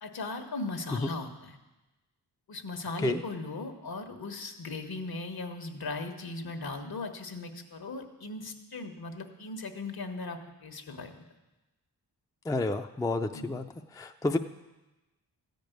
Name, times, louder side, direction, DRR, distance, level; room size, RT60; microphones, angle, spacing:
voice 1, 0.0-1.6 2.5-11.2 13.3-13.6, left 3 dB, 60° left, 6 dB, 1.4 m, -38 dB
voice 2, 12.4-13.6 13.9-14.4, left 2 dB, 10° left, 6 dB, 0.4 m, -29 dB
14.0 x 5.2 x 9.2 m, 1.1 s
wide cardioid pair, 85°, 40 cm